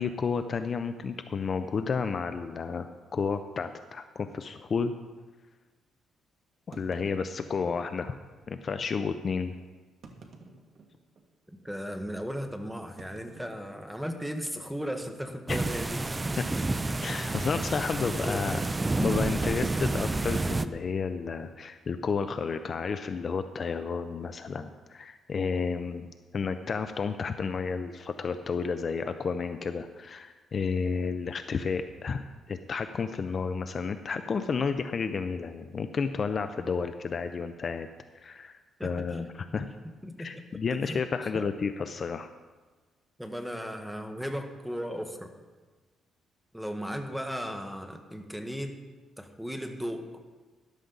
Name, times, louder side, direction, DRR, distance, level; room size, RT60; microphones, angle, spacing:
voice 1, 0.0-4.9 6.7-8.1 8.5-9.5 15.5-15.6 17.0-18.6 19.0-37.9 38.1-39.7 40.2-42.3, left 5 dB, 40° left, 9 dB, 0.5 m, -31 dB
sound 1, 2.9-3.0 3.3-3.4 4.0-4.1 6.7-7.9 8.7-8.8 9.9-11.3 11.8-11.9 13.0-14.1 14.4-14.7 15.0-15.3 17.1-18.7, right 3 dB, 50° right, 1.7 m, -52 dB
voice 2, 11.6-16.0 16.5-16.6 17.7-17.8 18.2-18.9 38.8-39.3 39.5-40.4 40.8-41.0 41.3-41.5 43.2-45.3 46.5-48.8 49.2-50.1, equal, ahead, 5 dB, 1.2 m, -36 dB
sound 2, 15.5-20.7, right 2 dB, 15° right, 0.4 m, -29 dB
13.5 x 12.0 x 3.9 m, 1.3 s
cardioid pair, 125°, 0 cm